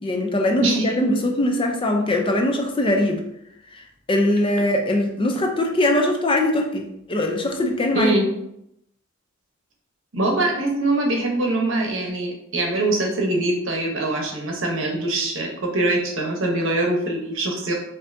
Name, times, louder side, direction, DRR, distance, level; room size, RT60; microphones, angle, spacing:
voice 1, 0.0-3.2 3.7-8.1, left 1 dB, 25° left, 3 dB, 0.5 m, -21 dB
voice 2, 10.1-17.7, right 2 dB, 70° right, 1 dB, 0.9 m, -23 dB
5.4 x 2.6 x 2.6 m, 0.79 s
head